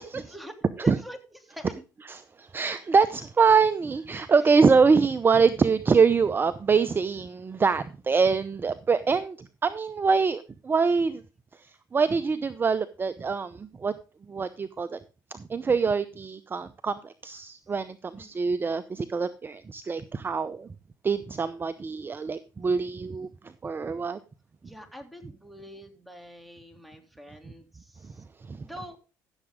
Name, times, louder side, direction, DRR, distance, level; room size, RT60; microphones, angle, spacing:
voice 1, 0.1-1.8 4.3-4.6 18.1-18.3 24.6-28.2 28.6-29.0, equal, ahead, 4 dB, 2.9 m, -45 dB
voice 2, 2.1-9.4 9.6-11.2 11.9-13.9 14.3-15.0 15.3-20.7 21.0-23.3 23.6-24.2 28.5-28.6, right 5 dB, 25° right, 12 dB, 0.7 m, -24 dB
15.0 x 7.2 x 3.7 m, 0.33 s
supercardioid pair, 85°, 8 cm